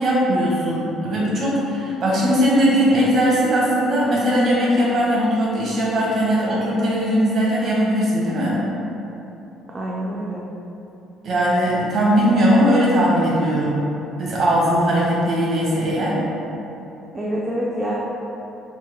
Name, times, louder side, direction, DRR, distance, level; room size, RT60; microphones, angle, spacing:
voice 1, 0.0-8.5 11.2-13.8 14.2-16.2, equal, 50° right, -5 dB, 1.1 m, -19 dB
voice 2, 9.7-10.4 17.1-18.0, right 1 dB, 25° right, -5 dB, 0.5 m, -26 dB
4.3 x 3.6 x 2.2 m, 2.9 s
cardioid pair, 110°, 0 cm